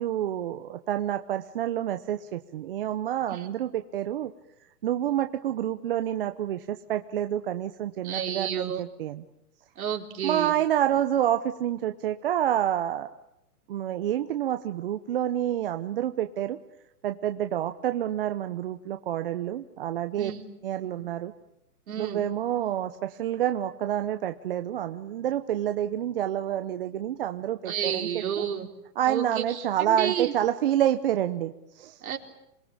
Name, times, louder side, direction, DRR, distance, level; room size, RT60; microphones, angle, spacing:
voice 1, 0.0-4.3 4.8-9.2 10.2-13.1 13.7-16.6 17.0-20.3 20.6-21.3 22.0-28.5 29.0-32.0, right 11 dB, 35° right, 8 dB, 0.9 m, -28 dB
voice 2, 8.0-8.8 9.8-10.6 20.2-20.4 21.9-22.3 27.7-28.7 29.1-30.3 32.0-32.2, right 9 dB, 60° right, 3 dB, 4.1 m, -31 dB
28.0 x 21.5 x 8.9 m, 0.85 s
hypercardioid pair, 160°, 47 cm